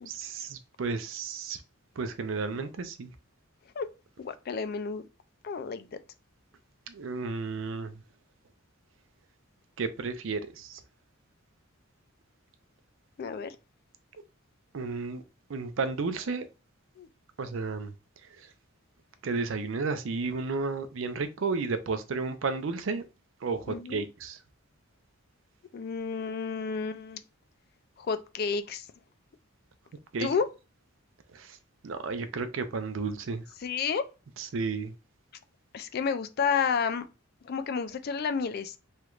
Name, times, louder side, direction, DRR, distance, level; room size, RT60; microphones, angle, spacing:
voice 1, 0.1-1.6 2.0-3.1 6.9-8.0 9.8-10.8 14.7-15.2 15.5-16.5 17.4-17.9 18.4-18.5 19.2-23.0 23.4-24.4 30.1-30.3 31.3-31.6 31.8-33.4 34.4-34.9, right 4 dB, 65° right, 0.5 m, -32 dB
voice 2, 4.2-5.1 5.4-5.9 13.2-13.6 17.0-17.1 23.7-24.0 25.7-27.2 28.0-28.9 30.2-30.5 33.6-34.0 35.7-37.0 37.4-38.8, left 6 dB, 45° left, 0.3 m, -31 dB
3.2 x 3.0 x 2.3 m
head